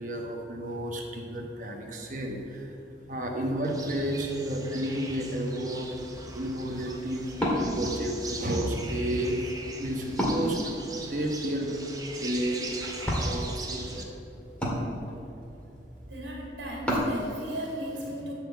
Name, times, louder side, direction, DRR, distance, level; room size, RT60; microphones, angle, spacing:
voice 1, 0.0-2.8 3.1-7.3 7.6-12.7 13.2-14.1, right 1 dB, 45° right, 1 dB, 1.3 m, -32 dB
sound 1, 3.6-14.0, right 3 dB, 20° right, 0.9 m, -41 dB
Wood, 5.7-17.2, equal, 5° left, 1.8 m, -34 dB
voice 2, 16.1-18.3, equal, 85° right, -2 dB, 2.2 m, -37 dB
12.0 x 4.5 x 7.1 m, 3.0 s
head